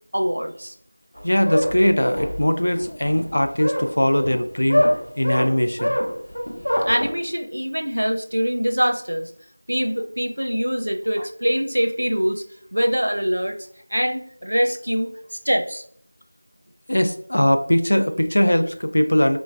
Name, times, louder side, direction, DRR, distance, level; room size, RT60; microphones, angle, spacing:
voice 1, 0.1-0.7 6.9-9.3 9.7-12.4 12.7-13.6 13.9-15.8, equal, 60° right, 5 dB, 0.5 m, -23 dB
sound 1, 1.1-7.1, equal, 70° left, 0.8 m, -24 dB
voice 2, 1.2-4.8 5.2-6.0 16.9-19.4, equal, 40° left, 7 dB, 0.3 m, -20 dB
3.9 x 3.0 x 2.4 m, 0.63 s
figure-of-eight pair, 180°, 0 cm